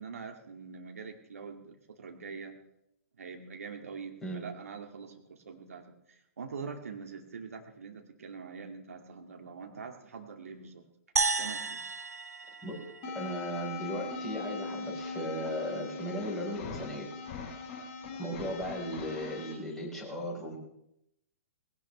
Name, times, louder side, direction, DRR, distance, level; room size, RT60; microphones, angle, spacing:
voice 1, 0.0-2.6 3.2-10.8 11.4-11.8, right 5 dB, 65° right, 3 dB, 2.4 m, -44 dB
sound 1, 11.2-13.6, right 3 dB, 80° right, 0.6 m, -33 dB
sound 2, 13.0-19.5, left 3 dB, 35° left, 6.6 m, -40 dB
voice 2, 13.1-17.1 18.2-20.6, equal, 5° left, -4 dB, 4.7 m, -36 dB
19.0 x 17.5 x 3.4 m, 0.82 s
figure-of-eight pair, 115°, 8 cm